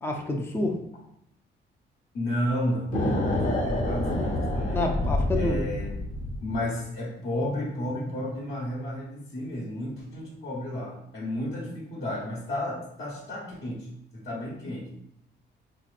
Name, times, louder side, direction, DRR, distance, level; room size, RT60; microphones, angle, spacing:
voice 1, 0.0-0.7 4.7-5.7, left 2 dB, 10° left, 1 dB, 0.5 m, -28 dB
voice 2, 2.1-4.9 5.3-5.9 6.4-13.9 14.1-14.9, left 1 dB, 65° left, -6 dB, 1.1 m, -32 dB
sound 1, 2.9-6.6, left 1 dB, 40° left, 0.8 m, -27 dB
3.7 x 2.9 x 2.4 m, 0.73 s
cardioid pair, 90°, 20 cm